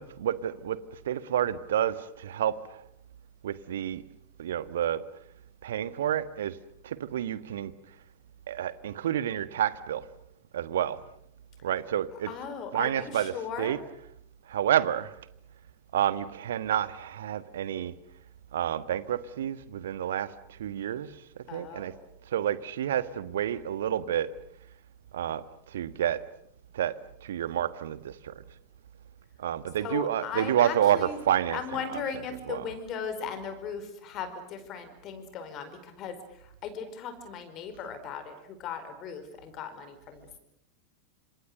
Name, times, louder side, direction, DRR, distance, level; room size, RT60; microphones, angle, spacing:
voice 1, 0.0-2.8 3.4-4.0 4.4-5.0 5.6-6.6 6.8-7.7 8.5-10.1 10.5-11.0 11.6-12.3 12.7-13.3 13.6-13.8 14.5-15.1 15.9-17.9 18.5-21.1 21.5-21.9 22.3-24.3 25.1-26.2 26.7-26.9 27.2-28.4 29.4-31.6 31.9-32.0 32.5-32.6, right 10 dB, 60° right, 14 dB, 1.4 m, -29 dB
voice 2, 12.3-13.8 21.5-22.0 29.8-31.2 31.5-40.4, left 6 dB, 35° left, 9 dB, 4.7 m, -38 dB
29.5 x 26.5 x 6.8 m, 0.76 s
figure-of-eight pair, 90°, 0 cm